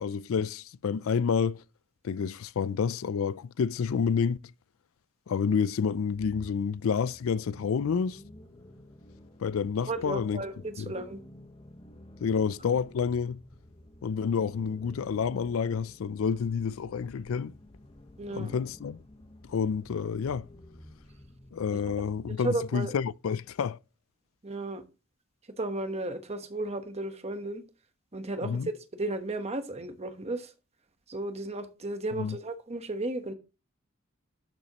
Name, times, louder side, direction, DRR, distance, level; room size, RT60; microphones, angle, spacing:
voice 1, 0.0-1.6 2.0-4.4 5.3-8.2 9.4-10.4 10.8-10.9 12.2-13.4 14.0-17.5 18.3-19.0 19.5-20.5 21.5-23.8 28.4-28.7 32.1-32.4, left 6 dB, 80° left, 0.4 m, -29 dB
sound 1, 6.0-22.7, left 1 dB, 25° left, 1.0 m, -51 dB
voice 2, 9.9-11.2 18.2-18.5 21.7-21.8 22.4-22.9 24.4-24.8 25.6-27.6 28.1-30.5 31.1-33.3, right 2 dB, 30° right, 1.0 m, -34 dB
11.5 x 7.1 x 2.9 m
head